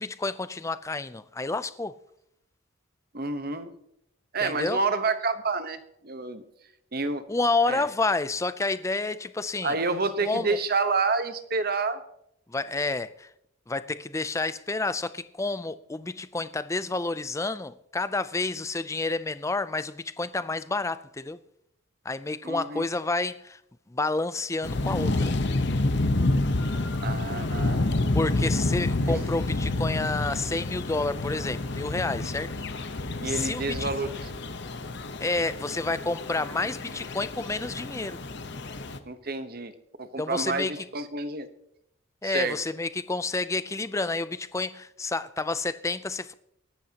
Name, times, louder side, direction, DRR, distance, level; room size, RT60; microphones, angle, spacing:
voice 1, 0.0-1.9 4.4-4.8 7.3-9.7 10.2-10.6 12.5-13.3 13.7-21.4 22.0-23.6 23.9-25.3 28.1-32.5 33.2-33.9 35.2-38.2 40.2-40.9 42.2-46.3, left 3 dB, 15° left, 0.4 m, -29 dB
voice 2, 3.1-3.7 4.3-6.4 6.9-7.3 7.7-7.8 9.6-12.0 22.4-22.9 27.0-27.8 29.1-29.2 33.2-34.3 39.1-39.7 40.0-41.5 42.2-42.6, right 3 dB, 45° right, 1.0 m, -29 dB
sound 1, 24.6-39.0, left 2 dB, 55° left, 1.0 m, -29 dB
23.5 x 12.0 x 2.9 m
head